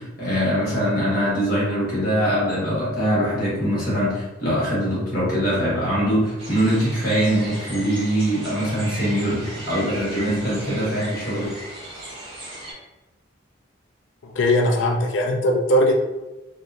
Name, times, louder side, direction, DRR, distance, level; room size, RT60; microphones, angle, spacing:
voice 1, 0.0-11.5, equal, 45° left, -7 dB, 1.4 m, -22 dB
sound 1, 6.4-12.7, right 1 dB, 30° right, 1.3 m, -37 dB
voice 2, 14.2-15.9, left 1 dB, 70° left, 2 dB, 0.4 m, -19 dB
3.0 x 2.8 x 2.4 m, 1.1 s
head